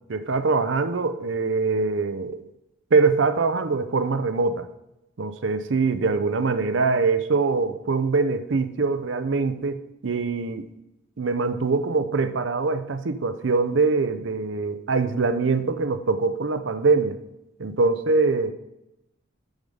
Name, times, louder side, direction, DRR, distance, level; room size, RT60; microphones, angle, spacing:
voice 1, 0.1-2.4 2.9-4.7 5.2-10.6 11.2-17.2 17.6-18.5, right 4 dB, 65° right, 10 dB, 0.6 m, -23 dB
7.1 x 5.0 x 5.4 m, 0.88 s
head